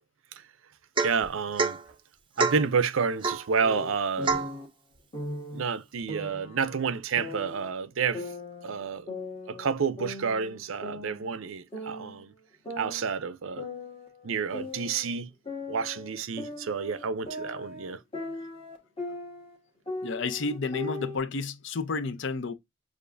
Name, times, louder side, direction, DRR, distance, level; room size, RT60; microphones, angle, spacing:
Domestic sounds home sounds / Chink clink / Drip, 1.0-1.3 1.6-1.8 2.4-2.7 3.2-3.5 4.2-4.6, right 4 dB, 25° right, 0.6 m, -27 dB
voice 1, 1.0-1.8 2.4-4.5 5.5-8.3 8.6-9.1 9.5-12.3 12.8-13.7 14.2-15.3 15.7-18.0, right 5 dB, 70° right, 0.5 m, -30 dB
sound 1, 3.6-4.7 5.1-5.6 6.1-7.7 8.1-9.7 10.0-11.5 11.7-12.2 12.6-15.1 15.4-19.6 19.9-21.2, left 2 dB, 25° left, 1.3 m, -39 dB
voice 2, 20.0-22.5, left 4 dB, 60° left, 0.5 m, -31 dB
6.8 x 2.5 x 2.5 m
head